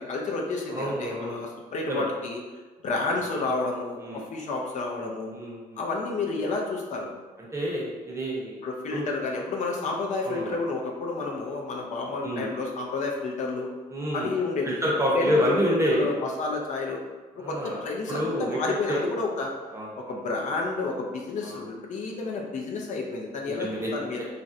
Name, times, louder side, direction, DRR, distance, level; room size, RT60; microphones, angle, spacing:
voice 1, 0.0-2.4 2.8-5.3 5.8-7.1 8.6-13.7 14.1-14.8 15.1-17.0 17.5-19.5 20.1-24.2, left 3 dB, 55° left, -1 dB, 0.5 m, -30 dB
voice 2, 0.7-1.4 1.9-2.1 3.2-3.3 4.0-4.2 5.3-5.8 7.5-8.6 8.9-9.1 10.2-10.6 12.2-12.5 13.9-14.3 14.6-16.1 17.4-17.8 18.1-19.1 19.7-20.0 21.4-21.7 23.6-24.2, equal, 20° right, -5 dB, 0.8 m, -28 dB
3.1 x 2.5 x 2.6 m, 1.3 s
cardioid pair, 120°, 15 cm